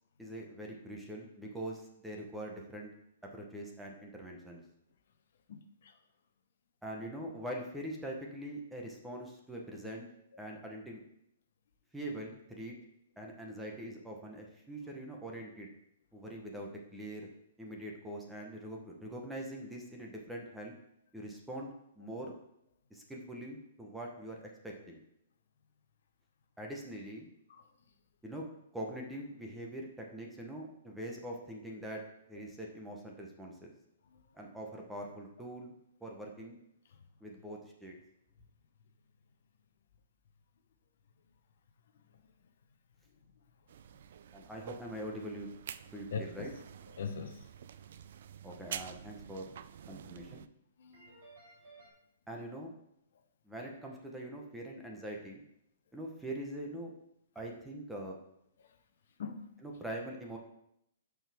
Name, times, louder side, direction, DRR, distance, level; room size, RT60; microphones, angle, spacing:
voice 1, 0.2-2.9 3.2-4.6 6.8-10.1 10.4-11.0 11.9-12.8 13.2-15.7 16.1-17.3 17.6-20.7 21.1-22.3 22.9-25.0 26.6-27.3 28.2-28.5 28.7-32.0 32.3-33.7 34.3-35.7 36.0-36.6 37.2-37.9 44.3-45.5 45.9-46.5 48.4-49.5 49.9-50.4 52.3-52.7 53.4-55.4 55.9-56.9 57.3-58.2 59.6-60.4, right 1 dB, 5° right, -1 dB, 0.8 m, -43 dB
voice 2, 5.5-5.9 27.5-27.6 46.1-46.5 47.0-47.4 50.8-51.2 59.2-59.5, left 5 dB, 60° left, 7 dB, 0.8 m, -41 dB
sound 1, 43.7-50.5, right 9 dB, 55° right, 0.3 m, -48 dB
sound 2, 46.1-48.2 50.9-51.9, right 3 dB, 25° right, 3.5 m, -61 dB
12.0 x 4.7 x 3.5 m, 0.77 s
hypercardioid pair, 175°, 0 cm